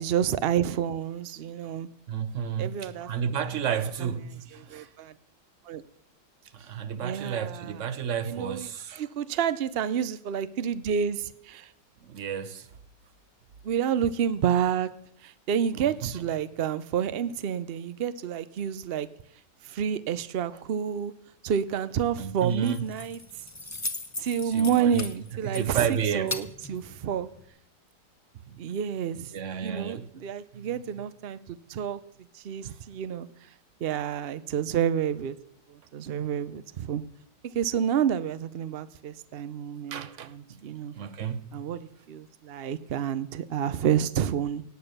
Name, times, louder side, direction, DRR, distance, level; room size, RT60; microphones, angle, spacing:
voice 1, 0.0-1.9 2.6-3.1 4.7-5.1 5.7-5.8 7.0-7.7 8.3-8.7 9.0-11.7 13.6-14.9 15.2-19.1 19.6-21.1 21.4-23.2 24.2-25.9 26.1-27.3 28.6-29.3 29.6-32.0 32.3-33.3 33.8-35.4 35.9-37.0 37.5-40.9 41.5-44.6, right 8 dB, 75° right, 0.5 m, -29 dB
voice 2, 2.1-4.9 6.5-9.1 12.0-12.7 15.8-16.1 20.5-20.6 22.2-22.9 24.4-25.1 25.4-26.3 28.5-28.6 29.3-30.1 30.5-30.8 32.6-32.8 39.9-40.6 40.9-41.5, right 8 dB, 55° right, 1.0 m, -32 dB
Keys jangling, 22.4-27.5, left 2 dB, 15° left, 0.6 m, -39 dB
17.5 x 9.1 x 6.6 m
omnidirectional pair, 1.9 m